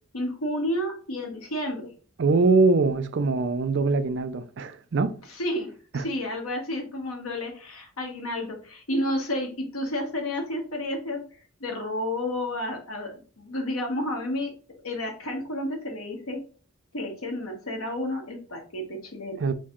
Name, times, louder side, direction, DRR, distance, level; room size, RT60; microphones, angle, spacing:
voice 1, 0.1-1.9 5.2-14.5 14.8-16.4 16.9-19.4, left 1 dB, 90° left, 1.3 m, -31 dB
voice 2, 2.2-5.1 5.9-6.0 19.4-19.5, right 3 dB, 55° right, 0.4 m, -22 dB
4.2 x 3.2 x 3.6 m
head